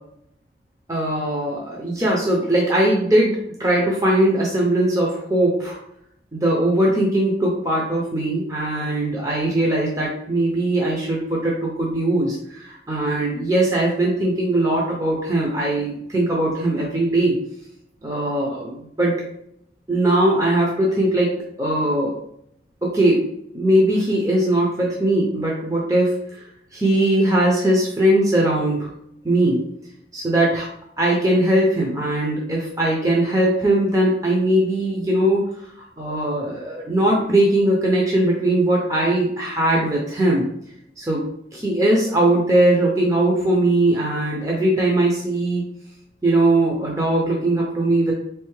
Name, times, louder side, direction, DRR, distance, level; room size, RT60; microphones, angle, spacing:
voice 1, 0.9-5.8 6.3-17.4 18.0-19.2 19.9-22.1 22.8-23.2 23.5-26.2 26.7-28.9 29.2-29.6 30.1-30.7 31.0-35.5 35.8-40.5 41.0-41.3 41.5-45.6 46.2-48.1, right 1 dB, 20° right, -3 dB, 0.6 m, -20 dB
4.0 x 3.3 x 3.1 m, 0.73 s
head